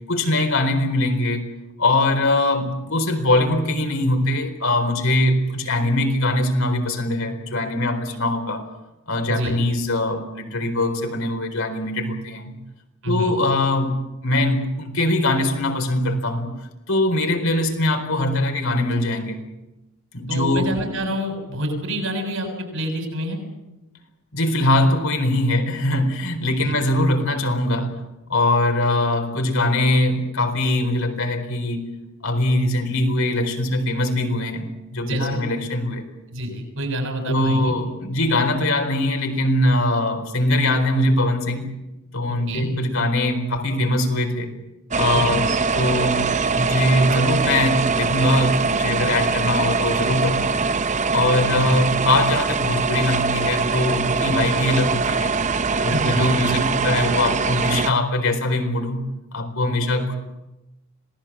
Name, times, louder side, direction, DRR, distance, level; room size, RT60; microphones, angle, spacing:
voice 1, 0.1-1.5 1.8-8.7 9.1-12.6 13.1-14.0 14.2-16.5 16.9-19.4 20.1-20.7 24.3-28.0 28.3-31.8 32.2-36.0 37.3-41.7 42.1-44.5 45.0-45.5 45.7-50.6 51.1-55.3 55.8-59.0 59.3-60.2, left 1 dB, 70° left, 5 dB, 4.2 m, -22 dB
voice 2, 13.0-13.4 20.3-23.4 26.6-26.7 35.1-35.4 36.3-37.8 42.3-42.7 45.1-45.5 51.6-51.8 55.9-56.2, equal, 65° right, 5 dB, 6.8 m, -27 dB
sound 1, 44.9-57.9, right 4 dB, 35° right, 0.7 m, -22 dB
26.5 x 18.5 x 7.4 m, 0.98 s
head